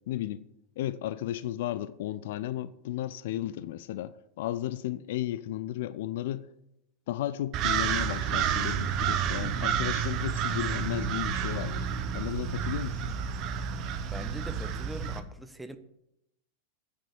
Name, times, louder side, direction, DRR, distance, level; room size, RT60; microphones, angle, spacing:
voice 1, 0.1-0.4 0.8-6.5 7.1-11.9 12.1-13.1, left 13 dB, 55° left, 0.4 m, -34 dB
sound 1, 7.5-15.2, right 8 dB, 40° right, 0.8 m, -30 dB
voice 2, 14.1-15.8, right 1 dB, 5° right, 0.8 m, -42 dB
9.0 x 6.8 x 7.2 m
figure-of-eight pair, 90°, 0 cm